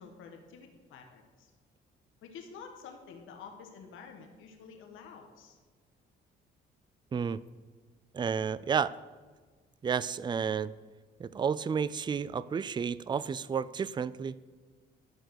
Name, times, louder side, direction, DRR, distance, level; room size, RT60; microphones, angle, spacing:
voice 1, 0.0-1.5 2.2-5.6, left 6 dB, 85° left, 4 dB, 1.3 m, -49 dB
voice 2, 8.1-8.9 9.8-10.7 11.2-14.4, right 6 dB, 25° right, 17 dB, 0.3 m, -31 dB
12.5 x 4.8 x 6.4 m, 1.4 s
cardioid pair, 90°, 20 cm